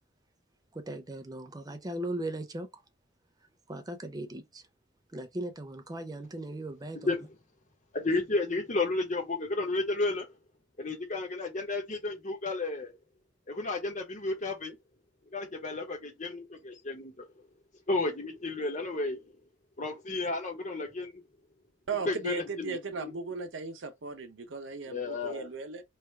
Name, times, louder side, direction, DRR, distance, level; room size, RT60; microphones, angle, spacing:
voice 1, 0.7-2.7 3.7-4.6 5.1-7.0, right 1 dB, 20° right, 0.5 m, -38 dB
voice 2, 6.9-7.3 7.9-10.3 10.8-12.9 13.5-14.8 15.3-17.1 17.9-19.3 19.8-21.2 22.0-23.1 24.9-25.5, left 2 dB, 40° left, 1.1 m, -32 dB
voice 3, 21.9-25.8, right 4 dB, 85° right, 0.7 m, -37 dB
3.3 x 2.4 x 4.4 m
head